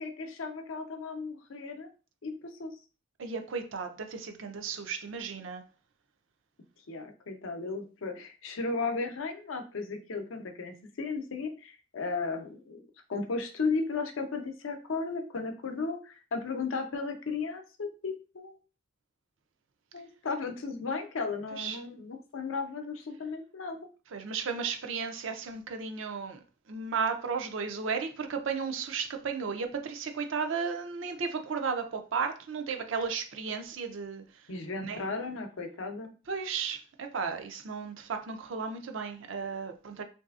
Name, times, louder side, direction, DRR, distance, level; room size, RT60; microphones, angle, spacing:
voice 1, 0.0-1.9 2.2-2.7 6.9-12.8 13.1-18.6 19.9-23.8 34.5-36.1, left 4 dB, 85° left, 0.6 m, -35 dB
voice 2, 3.2-5.6 21.5-21.8 24.1-26.4 26.7-34.2 34.9-35.0 36.3-40.0, right 5 dB, 75° right, 0.5 m, -34 dB
3.2 x 2.6 x 2.4 m
head